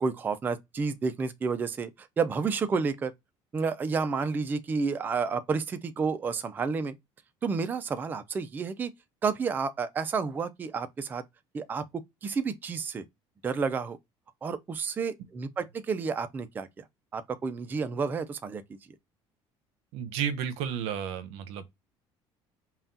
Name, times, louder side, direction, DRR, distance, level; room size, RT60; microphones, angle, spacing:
voice 1, 0.0-3.1 3.5-6.9 7.4-8.9 9.2-11.2 11.5-11.8 12.2-13.0 13.4-14.0 14.4-16.8 17.1-18.8, right 5 dB, 20° right, 0.4 m, -30 dB
voice 2, 19.9-21.7, right 8 dB, 75° right, 0.8 m, -32 dB
5.6 x 2.3 x 2.6 m
cardioid pair, 170°, 10 cm